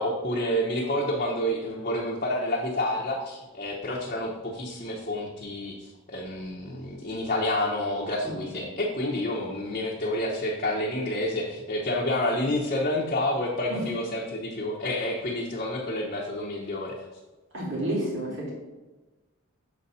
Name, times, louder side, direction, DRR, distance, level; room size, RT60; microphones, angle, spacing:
voice 1, 0.0-17.0, left 1 dB, 35° left, -3 dB, 0.8 m, -29 dB
voice 2, 17.5-18.5, right 1 dB, 55° right, -5 dB, 2.6 m, -30 dB
6.8 x 4.1 x 5.5 m, 1.2 s
head